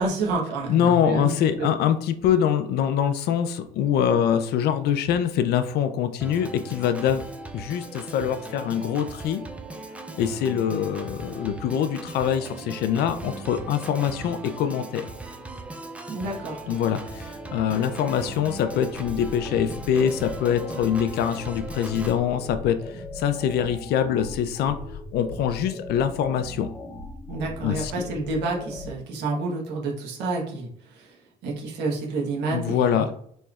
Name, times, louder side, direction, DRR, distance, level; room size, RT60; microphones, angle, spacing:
voice 1, 0.0-1.3 1.6-1.7 16.1-16.6 27.3-33.1, right 3 dB, 85° right, -1 dB, 1.2 m, -29 dB
voice 2, 0.7-7.2 7.5-9.4 10.2-15.1 16.7-24.8 25.1-26.7 27.6-27.9 32.5-33.1, left 9 dB, 75° left, 10 dB, 0.5 m, -24 dB
Organ, 6.2-22.2, right 2 dB, 10° right, 0.4 m, -38 dB
sound 1, 18.9-28.9, left 2 dB, 25° left, 1.1 m, -39 dB
4.2 x 3.1 x 2.4 m, 0.65 s
cardioid pair, 110°, 17 cm